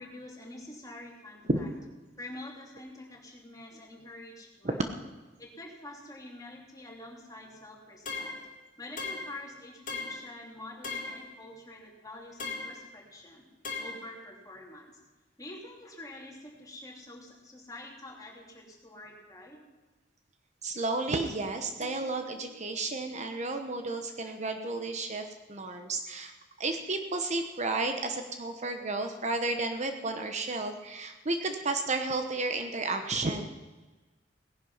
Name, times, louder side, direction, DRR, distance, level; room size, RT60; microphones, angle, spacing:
voice 1, 0.0-1.7 2.2-4.8 5.4-8.3 8.8-13.5 13.8-15.0 15.4-19.6 24.1-24.4 28.8-28.9, left 1 dB, 20° left, -1 dB, 3.0 m, -47 dB
sound 1, 8.1-8.5 9.0-9.4 9.9-10.3 10.8-11.3 12.4-12.8 13.6-14.1, left 4 dB, 45° left, 2.4 m, -37 dB
voice 2, 20.6-33.5, right 3 dB, 40° right, 6 dB, 1.0 m, -32 dB
sound 2, 21.8-24.2, left 1 dB, 65° left, 1.5 m, -53 dB
18.0 x 11.0 x 5.6 m, 1.2 s
head